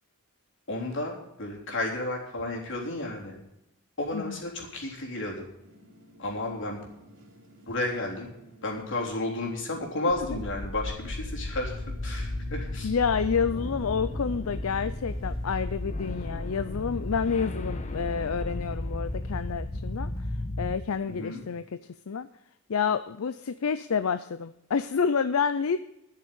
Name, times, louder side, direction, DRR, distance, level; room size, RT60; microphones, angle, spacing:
voice 1, 0.7-3.4 4.0-5.5 6.2-6.9 7.7-8.3 8.6-12.9 21.1-21.4, left 2 dB, 60° left, 0 dB, 3.6 m, -32 dB
sound 1, 5.6-17.7, equal, 65° right, 3.3 m, -54 dB
sound 2, 10.1-20.8, left 1 dB, 35° left, 1.1 m, -34 dB
voice 2, 12.8-20.1 20.6-22.3 22.7-25.8, left 6 dB, 80° left, 13 dB, 0.5 m, -29 dB
12.5 x 6.7 x 9.2 m, 0.88 s
head